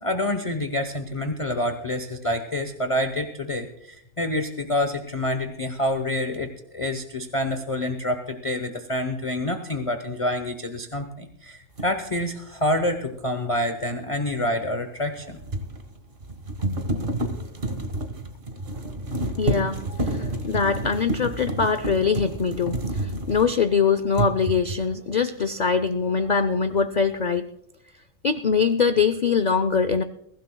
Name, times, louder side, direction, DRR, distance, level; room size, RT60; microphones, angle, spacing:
voice 1, 0.0-15.4, left 1 dB, 25° left, 7 dB, 0.8 m, -27 dB
sound 1, 11.8-11.9 15.0-23.8 24.1-24.9, right 1 dB, 35° right, 1.5 m, -29 dB
voice 2, 19.4-27.5 28.2-30.0, left 6 dB, 75° left, 11 dB, 0.4 m, -23 dB
21.5 x 16.0 x 2.2 m, 0.76 s
omnidirectional pair, 1.5 m